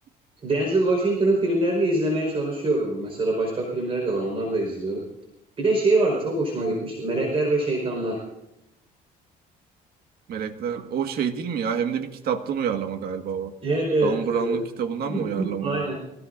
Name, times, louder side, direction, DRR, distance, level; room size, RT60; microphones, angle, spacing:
voice 1, 0.4-5.0 5.6-8.2 13.6-14.7 15.1-16.0, right 2 dB, 35° right, -1 dB, 4.9 m, -24 dB
voice 2, 10.3-13.5 14.0-15.8, right 7 dB, 65° right, 6 dB, 1.8 m, -28 dB
25.5 x 17.0 x 2.7 m, 0.87 s
cardioid pair, 110°, 17 cm